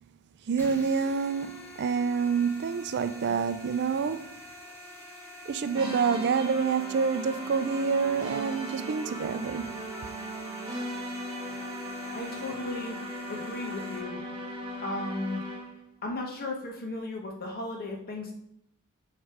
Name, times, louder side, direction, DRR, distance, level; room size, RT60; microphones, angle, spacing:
voice 1, 0.5-4.3 5.5-9.8, right 5 dB, 50° right, 0.4 m, -27 dB
sound 1, 0.6-14.0, left 1 dB, 10° left, 1.6 m, -46 dB
sound 2, 5.7-15.8, right 1 dB, 25° right, 1.6 m, -37 dB
voice 2, 11.9-13.0 13.3-14.2 14.8-15.4 16.0-18.3, left 2 dB, 45° left, 1.4 m, -35 dB
9.1 x 3.3 x 4.9 m
head